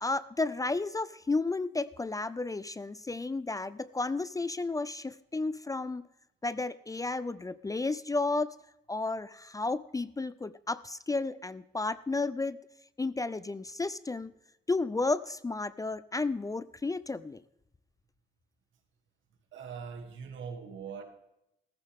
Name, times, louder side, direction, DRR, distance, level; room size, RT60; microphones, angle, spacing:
voice 1, 0.0-6.1 6.4-8.6 8.9-12.6 13.0-14.3 14.7-17.4, left 3 dB, 15° left, 0.5 m, -32 dB
voice 2, 19.5-21.0, right 6 dB, 75° right, 2.7 m, -41 dB
15.0 x 14.0 x 3.6 m
cardioid pair, 90°, 20 cm